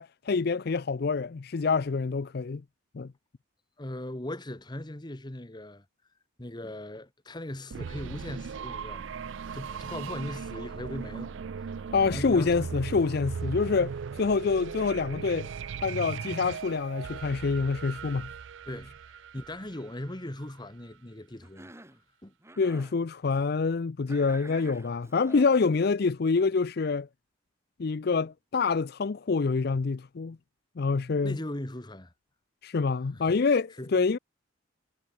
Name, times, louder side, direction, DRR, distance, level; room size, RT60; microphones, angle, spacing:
voice 1, 0.0-2.6 2.9-3.1 11.9-15.5 15.8-18.3 22.6-27.1 27.8-30.4 30.8-31.4 32.6-34.2, left 4 dB, 50° left, 0.5 m, -26 dB
voice 2, 3.8-5.8 6.4-12.7 18.7-21.7 22.2-22.3 31.2-32.1 33.1-33.4 33.8-33.9, left 1 dB, 20° left, 1.3 m, -39 dB
sound 1, 7.7-20.4, right 6 dB, 65° right, 0.4 m, -38 dB
Cough, 21.4-22.0 22.4-23.0 24.1-25.7, right 1 dB, 15° right, 2.8 m, -48 dB
head